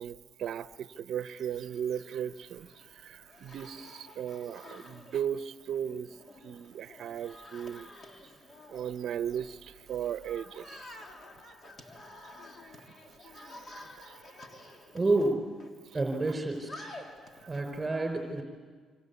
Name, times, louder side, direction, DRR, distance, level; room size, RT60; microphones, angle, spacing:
voice 1, 0.0-6.1 6.4-7.9 8.7-10.9 12.6-13.0 13.2-14.1, right 9 dB, 70° right, 0.7 m, -37 dB
sound 1, 1.2-17.6, left 1 dB, 40° left, 3.1 m, -51 dB
voice 2, 14.9-15.4 15.9-16.9 17.5-18.4, right 2 dB, 20° right, 4.8 m, -29 dB
27.0 x 26.0 x 8.3 m
cardioid pair, 90°, 0 cm